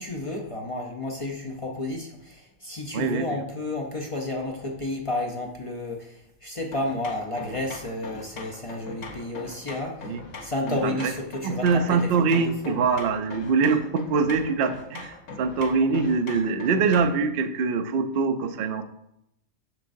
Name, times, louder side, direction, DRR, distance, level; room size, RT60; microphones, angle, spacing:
voice 1, 0.0-10.1 10.4-12.8, left 2 dB, 40° left, 1 dB, 0.5 m, -31 dB
voice 2, 2.9-3.4 10.0-10.2 10.7-11.1 11.4-18.8, right 5 dB, 65° right, 8 dB, 0.6 m, -24 dB
sound 1, 6.7-17.3, left 3 dB, 65° left, 1.2 m, -41 dB
7.3 x 6.1 x 2.6 m, 0.79 s
omnidirectional pair, 1.5 m